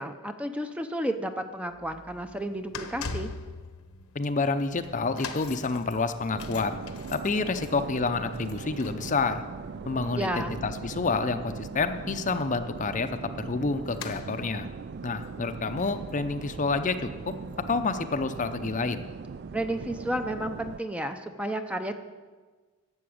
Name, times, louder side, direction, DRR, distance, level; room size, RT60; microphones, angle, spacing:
voice 1, 0.0-3.3 10.1-10.6 19.5-21.9, right 1 dB, 5° right, 7 dB, 0.6 m, -32 dB
sound 1, 1.7-18.0 18.3-18.5 19.3-19.4, left 4 dB, 75° left, 1.0 m, -45 dB
voice 2, 4.1-6.8 7.1-9.4 9.9-14.7 15.0-17.3 17.7-19.1, left 4 dB, 35° left, 9 dB, 0.6 m, -29 dB
sound 2, 6.3-20.8, right 5 dB, 50° right, 0.4 m, -40 dB
12.5 x 7.1 x 8.6 m, 1.4 s
head